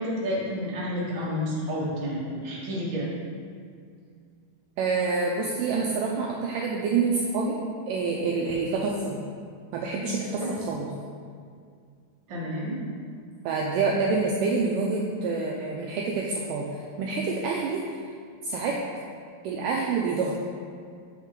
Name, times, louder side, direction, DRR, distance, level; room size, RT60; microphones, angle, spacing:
voice 1, 0.0-3.1 8.5-8.8 12.3-12.7, equal, 45° right, -6 dB, 1.6 m, -30 dB
voice 2, 4.8-7.6 7.9-9.2 9.7-10.4 10.7-10.9 13.5-16.7 17.0-17.8 18.4-18.8 19.4-20.3, right 4 dB, 80° right, -2 dB, 2.0 m, -27 dB
7.2 x 6.2 x 3.7 m, 2.2 s
omnidirectional pair, 4.3 m